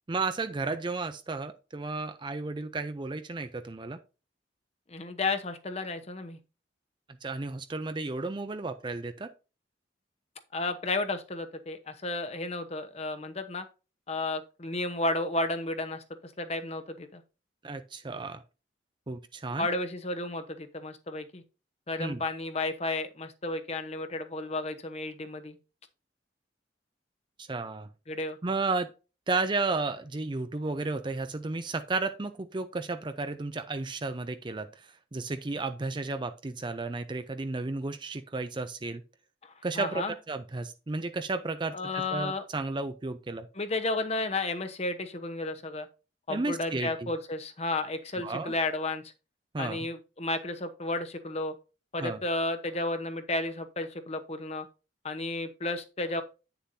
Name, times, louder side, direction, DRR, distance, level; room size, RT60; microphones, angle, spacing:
voice 1, 0.1-4.0 7.2-9.3 17.6-18.4 19.1-19.7 22.0-22.2 27.4-27.9 28.4-28.9 29.3-39.0 39.6-43.5 46.3-47.1 48.2-48.5 49.5-49.9 52.0-52.2, right 3 dB, 25° right, 9 dB, 0.5 m, -33 dB
voice 2, 4.9-6.4 10.5-13.6 14.1-17.2 19.6-21.4 21.9-25.6 28.1-28.4 39.4-40.1 41.7-42.4 43.6-45.9 46.3-49.0 49.6-51.5 51.9-54.7 55.0-56.2, left 2 dB, 35° left, 8 dB, 1.0 m, -32 dB
9.2 x 6.9 x 2.7 m, 0.31 s
head